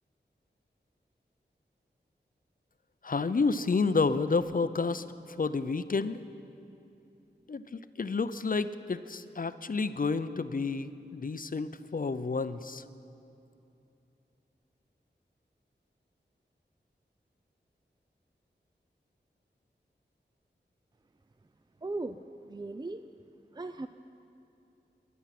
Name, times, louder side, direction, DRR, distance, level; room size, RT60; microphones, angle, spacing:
voice 1, 3.0-6.2 7.5-12.8, left 4 dB, 50° left, 13 dB, 0.5 m, -30 dB
voice 2, 21.8-22.2 22.5-23.1 23.5-23.9, right 2 dB, 25° right, 10 dB, 0.4 m, -37 dB
22.0 x 10.5 x 5.9 m, 2.8 s
wide cardioid pair, 70°, 19 cm